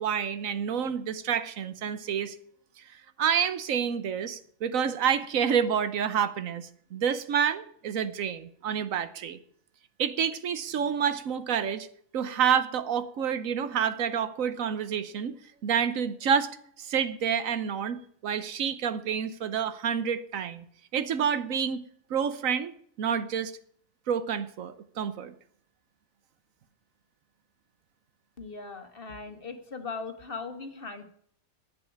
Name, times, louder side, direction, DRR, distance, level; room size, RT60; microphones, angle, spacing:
voice 1, 0.0-2.4 2.9-9.4 10.0-11.9 12.1-15.4 15.6-20.6 20.9-21.8 22.1-23.5 24.1-25.3, right 7 dB, 75° right, 1.2 m, -28 dB
voice 2, 28.4-31.0, left 4 dB, 40° left, 1.6 m, -39 dB
10.5 x 8.2 x 8.5 m
omnidirectional pair, 1.4 m